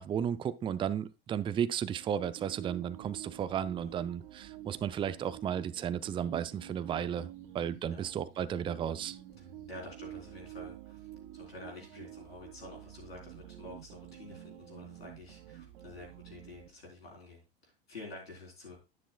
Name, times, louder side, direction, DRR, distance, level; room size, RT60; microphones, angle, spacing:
voice 1, 0.0-9.2, right 9 dB, 15° right, 0.4 m, -34 dB
sound 1, 1.9-16.7, right 13 dB, 60° right, 1.3 m, -49 dB
voice 2, 9.4-18.8, left 2 dB, 85° left, 3.9 m, -49 dB
10.0 x 9.4 x 2.3 m
figure-of-eight pair, 80°, 30 cm